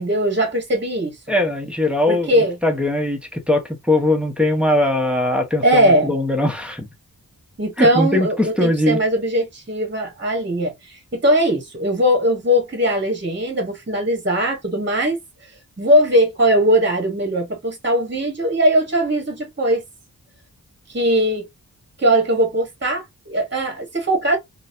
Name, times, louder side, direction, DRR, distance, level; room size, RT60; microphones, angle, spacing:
voice 1, 0.0-1.2 2.1-2.5 5.6-6.1 7.6-15.2 15.8-19.8 20.9-21.4 22.0-24.4, equal, 30° right, 1.2 m, -19 dB
voice 2, 1.3-6.9 7.8-9.0, left 1 dB, 5° right, 1.0 m, -20 dB
3.9 x 2.3 x 2.6 m
wide cardioid pair, 65°, 38 cm